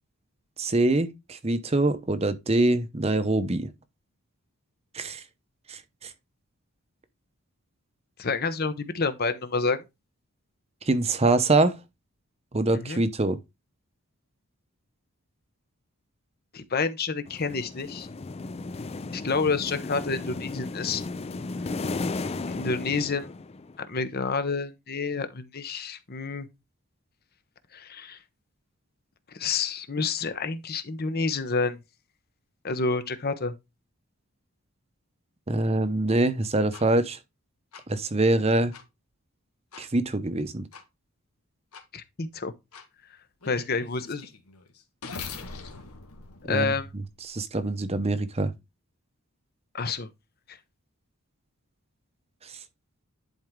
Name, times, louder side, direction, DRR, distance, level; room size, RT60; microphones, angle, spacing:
voice 1, 0.6-3.7 4.9-5.2 5.7-6.1 10.8-11.8 12.5-13.4 35.5-37.2 37.9-38.7 39.8-40.7 46.5-46.7 47.3-48.5, right 2 dB, 30° right, 0.7 m, -24 dB
voice 2, 8.2-9.8 12.7-13.0 16.5-18.1 19.1-21.0 22.5-23.3 23.8-26.5 27.7-28.2 29.3-31.8 32.6-33.5 41.9-42.5 43.5-44.3 46.4-46.9 49.7-50.1 50.5-50.6, left 4 dB, 45° left, 0.9 m, -29 dB
sound 1, 17.3-23.8, left 3 dB, 25° left, 0.4 m, -35 dB
sound 2, 36.7-36.8 37.7-37.8 38.7-38.8 39.7-39.9 40.7-40.8 41.7-41.8 42.7-42.9 43.4-47.3, left 5 dB, 80° left, 1.8 m, -42 dB
10.5 x 4.5 x 3.7 m
head